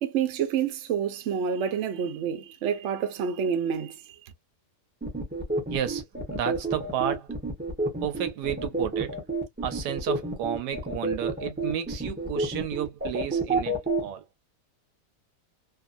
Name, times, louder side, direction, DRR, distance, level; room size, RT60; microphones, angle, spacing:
voice 1, 0.0-4.0, right 7 dB, 60° right, 0.8 m, -28 dB
sound 1, 5.0-14.0, right 2 dB, 15° right, 0.4 m, -29 dB
voice 2, 5.7-7.3 8.0-9.3 9.6-14.2, right 10 dB, 80° right, 1.2 m, -32 dB
2.8 x 2.5 x 2.5 m
omnidirectional pair, 1.8 m